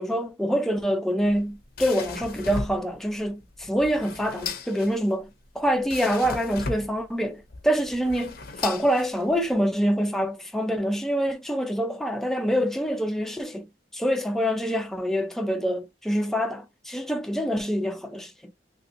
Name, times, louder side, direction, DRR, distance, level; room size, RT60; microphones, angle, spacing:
voice 1, 0.0-8.4 8.6-13.7 13.9-18.5, equal, ahead, 0.5 m, -26 dB
sound 1, 1.2-9.5, left 4 dB, 60° left, 0.7 m, -37 dB
3.1 x 2.9 x 2.6 m
head